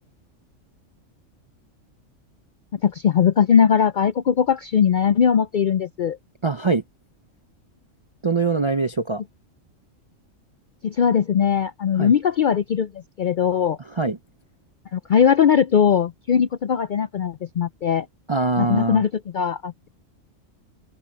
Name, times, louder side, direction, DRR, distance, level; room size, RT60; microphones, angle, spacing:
voice 1, 2.7-6.2 10.8-12.9 13.2-13.8 14.9-18.1 18.6-19.9, left 7 dB, 65° left, 0.5 m, -20 dB
voice 2, 6.4-6.8 8.2-9.2 12.0-12.1 14.0-14.2 18.3-19.0, right 4 dB, 45° right, 0.4 m, -22 dB
omnidirectional pair, 1.3 m